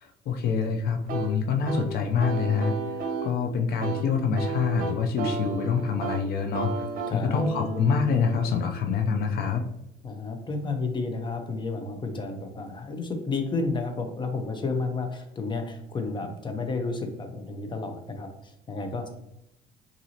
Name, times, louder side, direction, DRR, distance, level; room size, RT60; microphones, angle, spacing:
voice 1, 0.0-2.7 3.0-6.8 7.1-9.6, left 6 dB, 65° left, 4 dB, 0.5 m, -26 dB
sound 1, 1.1-9.7, right 4 dB, 55° right, 0.9 m, -34 dB
voice 2, 7.1-7.4 10.0-19.1, left 3 dB, 30° left, 6 dB, 0.7 m, -31 dB
5.7 x 2.7 x 2.8 m, 0.84 s
cardioid pair, 110°, 17 cm